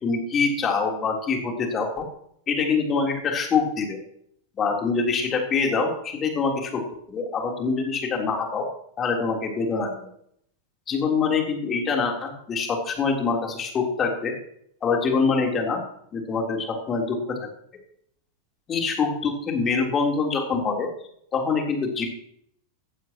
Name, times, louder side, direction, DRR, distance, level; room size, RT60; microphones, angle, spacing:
voice 1, 0.0-2.1 2.5-4.0 4.6-8.7 9.0-9.9 10.9-14.3 14.8-15.8 16.1-17.4 18.7-20.9 21.3-22.1, left 4 dB, 25° left, 2 dB, 3.6 m, -25 dB
16.5 x 14.5 x 3.0 m, 0.69 s
figure-of-eight pair, 90°, 0 cm